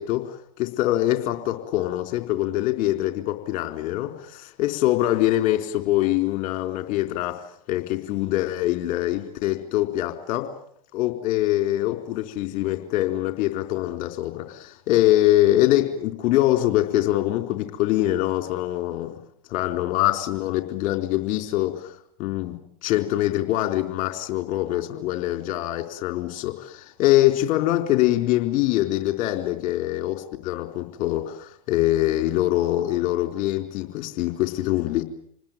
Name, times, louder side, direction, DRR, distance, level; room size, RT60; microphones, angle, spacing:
voice 1, 0.0-10.5 10.9-19.2 19.5-21.9 22.2-22.6 22.8-35.0, left 15 dB, 45° left, 6 dB, 4.1 m, -24 dB
27.5 x 20.0 x 9.1 m, 0.67 s
hypercardioid pair, 95°, 19 cm